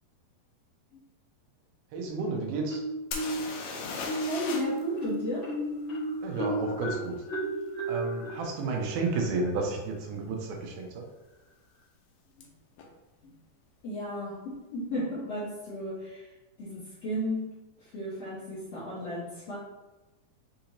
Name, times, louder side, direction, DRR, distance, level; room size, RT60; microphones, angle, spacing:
voice 1, 1.9-2.8 6.2-7.2 7.9-11.1, right 3 dB, 90° right, 1 dB, 2.5 m, -32 dB
Marimba xylophone, 2.7-3.6 4.0-9.6, right 1 dB, 50° left, 1.5 m, -34 dB
sound 1, 3.1-4.8 5.1-5.2 8.6-8.7 9.3-9.5 9.8-10.4 12.4-12.5 12.8-12.9, left 4 dB, 85° left, 1.6 m, -37 dB
voice 2, 4.3-5.5 12.4-12.5 13.2-13.3 13.8-16.3 16.6-17.5 17.8-19.6, equal, 70° left, -9 dB, 1.5 m, -34 dB
6.5 x 2.9 x 2.7 m, 1.1 s
omnidirectional pair, 4.3 m